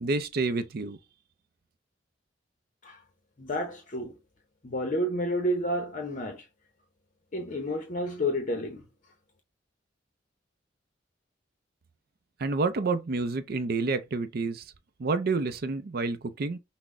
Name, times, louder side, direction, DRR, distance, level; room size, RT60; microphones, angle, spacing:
voice 1, 0.0-1.0 12.4-14.6 15.0-16.6, right 3 dB, 50° right, 0.5 m, -29 dB
voice 2, 3.4-4.2 4.6-6.5 7.3-8.8, equal, 40° left, 0.7 m, -30 dB
6.0 x 2.1 x 3.6 m
head